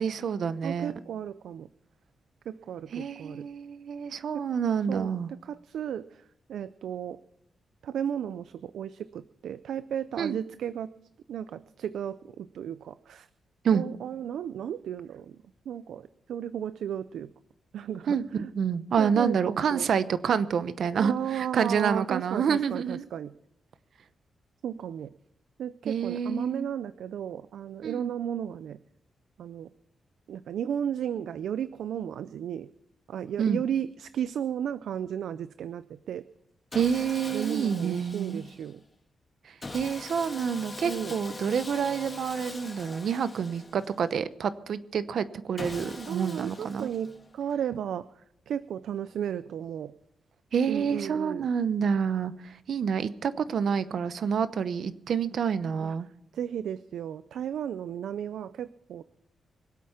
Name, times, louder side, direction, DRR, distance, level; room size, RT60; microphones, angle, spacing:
voice 1, 0.0-0.9 2.9-5.3 10.2-10.4 13.6-13.8 18.1-18.2 18.5-23.1 25.8-26.7 27.8-28.1 33.4-33.6 36.7-38.4 39.4-46.9 50.5-56.1, right 7 dB, 70° right, 14 dB, 0.8 m, -28 dB
voice 2, 0.6-1.7 2.5-3.5 4.3-4.4 4.9-5.1 5.4-7.2 7.8-10.9 11.3-13.3 13.7-15.4 15.7-17.3 17.7-18.5 19.0-19.9 20.9-23.3 24.6-25.1 25.6-28.8 29.4-29.7 30.3-32.7 33.1-36.3 37.3-38.8 40.8-41.1 46.0-49.9 50.7-51.5 55.8-55.9 56.3-59.0, right 9 dB, 85° right, 14 dB, 0.5 m, -34 dB
Sawing, 36.7-38.8 39.6-44.1 45.6-47.4, left 2 dB, 30° left, 2.2 m, -42 dB
23.5 x 8.5 x 5.7 m, 0.75 s
cardioid pair, 105°, 0 cm